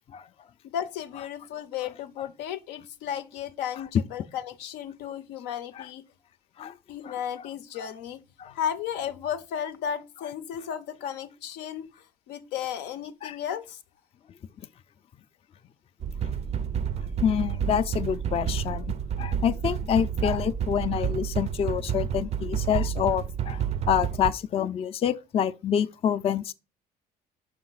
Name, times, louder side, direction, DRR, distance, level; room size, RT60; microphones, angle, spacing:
voice 1, 0.6-6.0 6.9-8.2 8.5-11.9 12.3-13.8, left 9 dB, 90° left, 0.6 m, -34 dB
sound 1, 16.0-24.3, right 8 dB, 40° right, 0.4 m, -30 dB
voice 2, 17.2-26.5, left 9 dB, 35° left, 0.4 m, -27 dB
5.7 x 5.1 x 3.9 m
cardioid pair, 110°, 17 cm